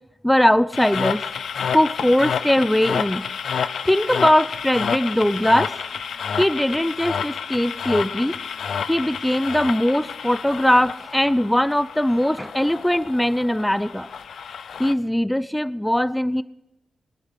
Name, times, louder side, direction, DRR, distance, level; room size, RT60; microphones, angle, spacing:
voice 1, 0.2-1.2 1.6-3.2 3.8-5.8 6.4-8.3 8.9-14.1 14.8-16.4, left 1 dB, 5° left, 18 dB, 0.5 m, -20 dB
sound 1, 0.7-14.9, left 7 dB, 75° left, 0.6 m, -30 dB
20.0 x 11.0 x 5.9 m, 0.94 s
wide cardioid pair, 115°, 0 cm